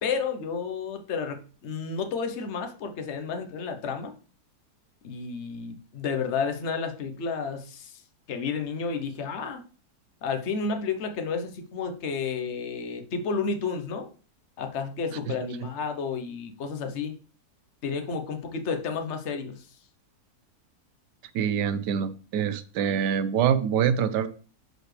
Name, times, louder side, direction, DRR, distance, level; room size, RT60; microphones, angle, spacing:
voice 1, 0.0-4.1 5.0-8.0 8.3-9.6 10.2-14.1 14.6-17.1 17.8-19.7, left 5 dB, 50° left, 1.1 m, -31 dB
voice 2, 21.3-24.3, right 8 dB, 90° right, 1.3 m, -25 dB
11.5 x 4.3 x 3.3 m
omnidirectional pair, 1.8 m